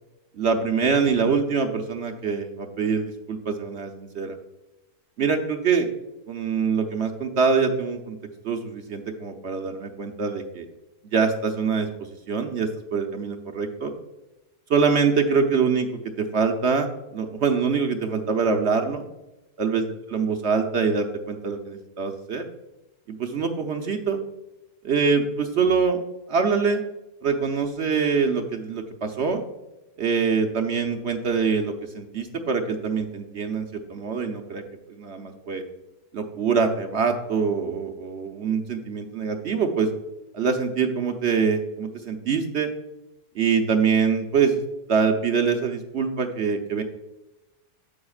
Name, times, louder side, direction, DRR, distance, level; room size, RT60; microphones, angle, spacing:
voice 1, 0.4-4.4 5.2-5.9 6.3-8.2 8.4-10.7 11.1-11.9 12.3-13.9 14.7-15.9 16.2-19.0 19.6-19.8 20.1-22.4 23.1-24.2 24.8-26.0 26.3-26.8 27.2-29.4 30.0-34.6 34.9-35.6 36.1-39.9 40.3-42.7 43.4-44.6 44.9-46.8, right 5 dB, 55° right, 5 dB, 0.8 m, -24 dB
9.9 x 7.8 x 2.4 m, 0.99 s
omnidirectional pair, 1.7 m